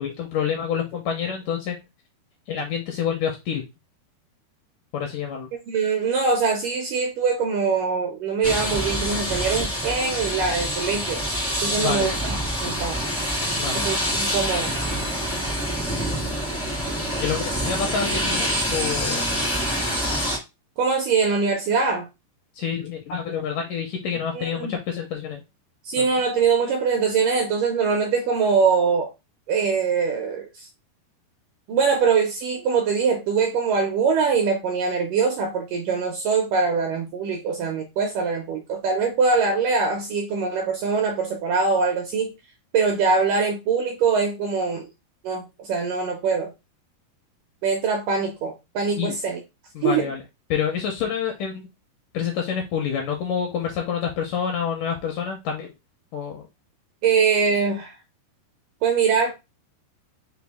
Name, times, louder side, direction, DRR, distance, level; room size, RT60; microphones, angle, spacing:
voice 1, 0.0-1.8 2.5-3.6 4.9-5.5 11.8-12.1 13.6-13.8 16.0-16.3 17.2-19.4 22.5-25.4 26.0-26.1 49.0-49.2 49.8-50.2 50.5-51.6 52.1-55.7 56.1-56.5, left 7 dB, 80° left, 1.9 m, -28 dB
voice 2, 5.7-11.2 11.6-13.0 13.8-14.7 20.8-22.1 24.3-24.8 25.8-29.1 29.5-30.7 31.7-42.3 42.7-44.9 45.2-46.5 47.6-49.4 49.8-50.1 57.0-57.9 58.8-59.3, right 5 dB, 80° right, 1.9 m, -23 dB
sound 1, 8.4-20.4, equal, 20° left, 0.4 m, -26 dB
5.8 x 2.3 x 3.4 m
omnidirectional pair, 4.5 m